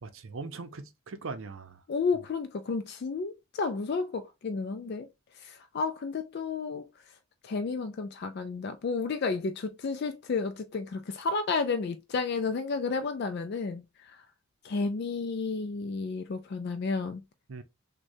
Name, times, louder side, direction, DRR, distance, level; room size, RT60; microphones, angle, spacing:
voice 1, 0.0-1.8 17.5-17.6, right 4 dB, 65° right, 0.6 m, -40 dB
voice 2, 1.9-5.1 5.4-6.9 7.4-14.2 14.6-17.2, left 4 dB, 50° left, 0.3 m, -32 dB
6.2 x 2.2 x 2.6 m
head